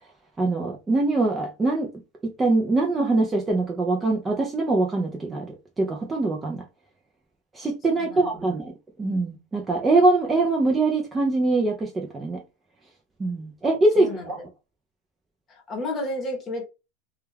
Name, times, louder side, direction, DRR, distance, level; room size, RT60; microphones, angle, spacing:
voice 1, 0.4-1.9 2.2-6.6 7.5-8.7 9.0-12.4 13.2-14.4, right 2 dB, 10° right, 0.3 m, -23 dB
voice 2, 8.0-8.5 14.0-14.3 15.5-16.6, left 1 dB, 20° left, 0.8 m, -32 dB
2.2 x 2.2 x 3.2 m
supercardioid pair, 160°, 0 cm